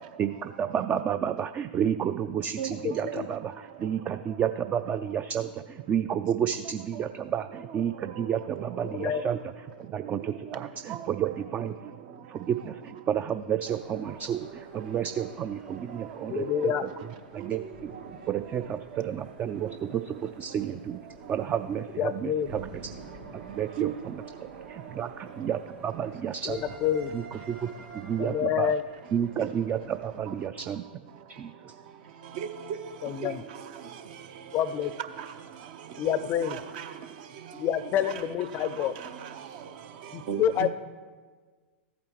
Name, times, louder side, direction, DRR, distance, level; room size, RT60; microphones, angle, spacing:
voice 1, 0.2-9.4 9.9-11.8 12.3-16.7 17.3-17.9 18.3-21.0 21.3-22.7 23.3-23.9 24.7-26.6 27.1-27.7 27.9-28.7 29.1-30.8 31.3-31.7, right 9 dB, 25° right, 0.3 m, -31 dB
voice 2, 2.8-3.3 8.8-9.2 16.3-16.8 22.0-22.6 26.5-27.1 28.2-28.8 33.0-33.4 34.5-34.9 36.0-36.6 37.5-38.9 40.1-40.7, left 9 dB, 35° left, 0.5 m, -28 dB
voice 3, 8.1-9.1 10.9-11.0 16.2-16.3 16.7-16.8 17.4-17.5 17.9-18.0 19.6-19.7 23.8-23.9 29.4-29.5 32.3-32.8 33.2-33.4 35.2-35.3 36.4-37.0 38.0-38.2 38.6-39.5 40.0-40.7, right 9 dB, 55° right, 0.9 m, -36 dB
sound 1, 13.6-30.4, right 4 dB, 75° right, 2.9 m, -49 dB
14.5 x 8.5 x 3.0 m
hypercardioid pair, 105°, 6 cm